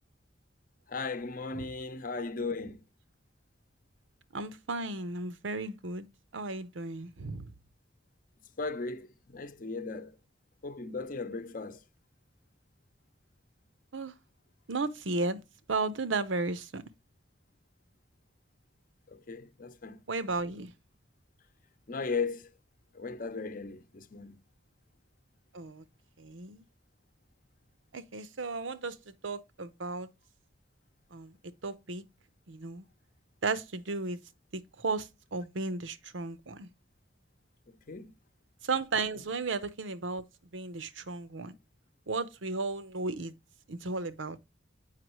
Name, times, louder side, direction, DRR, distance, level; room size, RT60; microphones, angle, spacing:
voice 1, 0.9-2.8 8.6-9.1 9.3-10.1 10.6-11.8 19.1-20.0 21.9-22.4 22.9-24.4 37.9-38.1, left 4 dB, 45° left, 0.7 m, -36 dB
voice 2, 4.3-6.1 6.3-7.5 13.9-14.1 14.7-15.4 15.7-16.8 20.1-20.7 25.5-25.8 26.2-26.6 27.9-30.1 31.1-31.3 31.6-32.0 32.5-32.8 33.4-34.2 34.5-36.7 38.6-40.2 40.5-41.5 42.1-43.3 43.7-44.4, right 3 dB, 90° right, 0.8 m, -34 dB
7.6 x 5.5 x 3.0 m
head